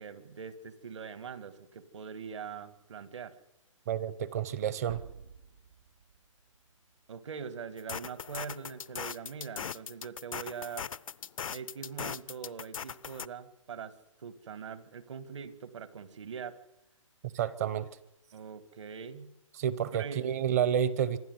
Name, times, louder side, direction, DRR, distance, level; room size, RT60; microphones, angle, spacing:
voice 1, 0.0-3.3 7.1-10.9 11.5-13.9 14.2-16.6 18.3-19.3 19.9-20.2, right 6 dB, 60° right, 15 dB, 1.7 m, -42 dB
voice 2, 3.9-5.0 17.3-17.9 19.6-21.2, right 9 dB, 30° right, 18 dB, 0.7 m, -29 dB
sound 1, 4.9-7.7, right 5 dB, 85° right, 2.1 m, -51 dB
sound 2, 7.8-13.3, left 7 dB, 80° left, 0.7 m, -39 dB
25.5 x 12.0 x 9.5 m, 0.89 s
hypercardioid pair, 165°, 17 cm